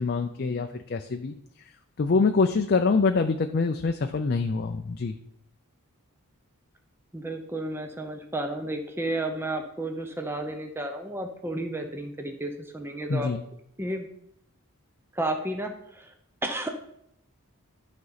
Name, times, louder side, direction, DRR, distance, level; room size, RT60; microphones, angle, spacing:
voice 1, 0.0-1.3 2.0-5.2 13.1-13.4, left 4 dB, 45° left, 6 dB, 0.4 m, -25 dB
voice 2, 7.1-13.3 13.8-14.1 15.1-16.1 16.4-16.7, right 1 dB, 10° right, 4 dB, 0.7 m, -32 dB
11.5 x 5.3 x 4.0 m, 0.73 s
head